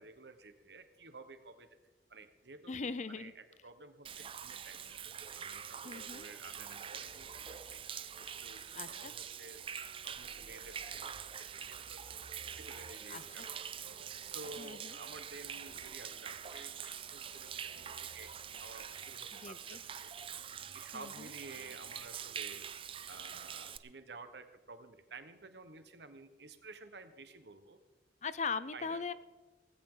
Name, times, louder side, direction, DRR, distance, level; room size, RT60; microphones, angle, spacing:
voice 1, 0.0-1.8 2.1-5.0 5.3-7.8 8.2-9.6 10.0-12.2 12.6-13.7 14.2-18.3 18.6-20.1 20.7-22.7 23.1-27.8 28.7-29.0, right 3 dB, 75° right, 9 dB, 1.3 m, -52 dB
voice 2, 2.7-3.3 5.8-6.3 8.7-9.1 13.1-13.5 14.6-15.0 19.4-19.8 20.9-21.3 28.2-29.1, left 5 dB, 40° left, 15 dB, 0.6 m, -40 dB
Human voice / Rain / Stream, 4.0-23.8, right 8 dB, 30° right, 0.5 m, -45 dB
sound 1, 5.2-19.0, right 2 dB, 50° right, 4.5 m, -61 dB
17.5 x 16.0 x 3.9 m, 1.2 s
head